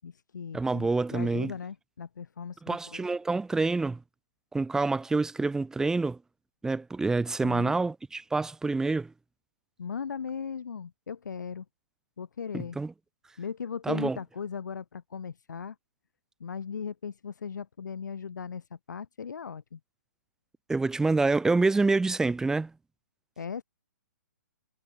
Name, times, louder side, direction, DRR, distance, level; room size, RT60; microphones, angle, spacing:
voice 1, 0.0-3.1 7.4-7.8 9.8-11.6 12.2-12.8 13.4-15.8 16.4-19.8 23.4-23.6, left 6 dB, 75° left, 7.5 m, -38 dB
voice 2, 0.5-1.5 2.6-4.0 4.5-6.2 6.6-9.1 12.5-12.9 13.8-14.2 20.7-22.7, right 3 dB, 5° right, 2.0 m, -27 dB
hypercardioid pair, 140°, 10 cm